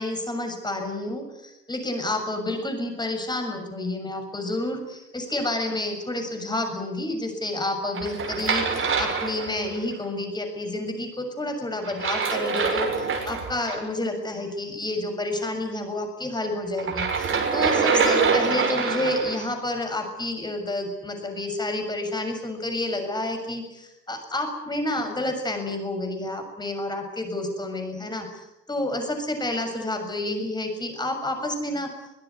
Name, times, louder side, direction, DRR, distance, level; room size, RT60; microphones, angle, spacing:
voice 1, 0.0-31.9, left 1 dB, 10° left, 5 dB, 6.7 m, -29 dB
sound 1, 7.9-9.9 11.8-13.8 16.8-19.5, right 5 dB, 25° right, 6.3 m, -25 dB
22.5 x 21.0 x 9.6 m, 0.94 s
figure-of-eight pair, 90°, 48 cm